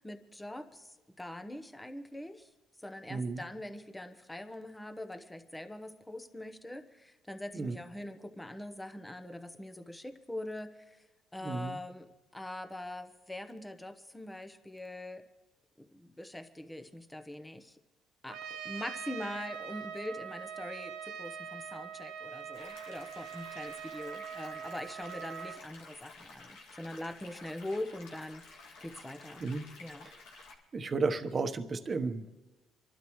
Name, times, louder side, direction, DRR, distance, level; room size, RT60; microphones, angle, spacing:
voice 1, 0.0-2.5 2.8-11.0 11.3-15.2 15.8-17.8 18.2-29.4 29.8-30.1, left 1 dB, 10° left, 8 dB, 1.1 m, -43 dB
voice 2, 3.1-3.4 7.5-7.8 11.4-11.8 29.4-29.6 30.7-32.3, right 4 dB, 35° right, 7 dB, 1.1 m, -33 dB
Trumpet, 18.3-25.6, right 8 dB, 80° right, 1.0 m, -43 dB
sound 1, 22.5-30.5, left 3 dB, 85° left, 2.2 m, -52 dB
27.5 x 12.0 x 3.2 m, 1.2 s
cardioid pair, 95°, 0 cm